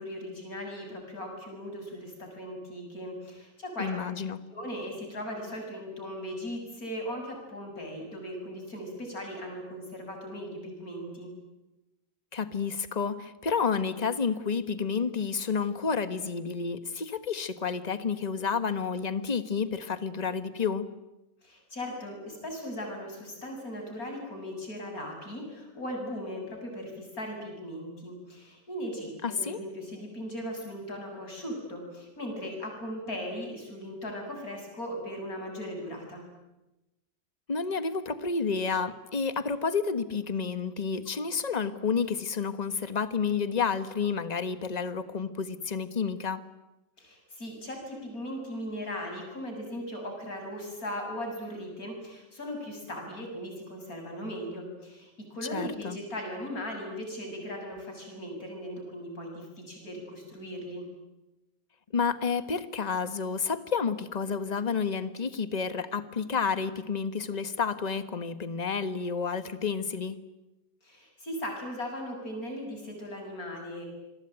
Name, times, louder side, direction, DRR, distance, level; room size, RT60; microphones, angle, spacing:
voice 1, 0.0-3.9 4.5-11.3 21.4-36.3 47.0-60.9 70.8-73.9, equal, 55° left, 2 dB, 7.8 m, -38 dB
voice 2, 3.8-4.4 12.3-20.9 29.2-29.6 37.5-46.4 55.5-56.0 61.9-70.2, left 5 dB, 25° left, 11 dB, 1.3 m, -30 dB
27.5 x 22.0 x 9.1 m, 1.0 s
omnidirectional pair, 1.8 m